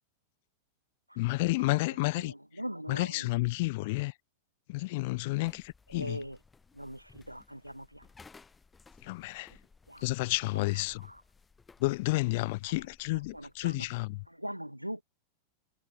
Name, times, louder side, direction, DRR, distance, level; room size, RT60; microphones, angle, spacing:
voice 1, 1.2-2.3 2.9-4.1 4.7-6.2 9.0-9.5 10.0-11.1 11.8-14.2, left 23 dB, 50° left, 0.6 m, -31 dB
voice 2, 2.2-3.3 5.9-6.4 6.7-8.0 9.9-10.0 11.0-11.2 13.1-13.9 14.3-15.0, equal, 90° right, 0.9 m, -41 dB
sound 1, 5.4-14.3, left 4 dB, 15° left, 4.8 m, -59 dB
figure-of-eight pair, 90°, 0 cm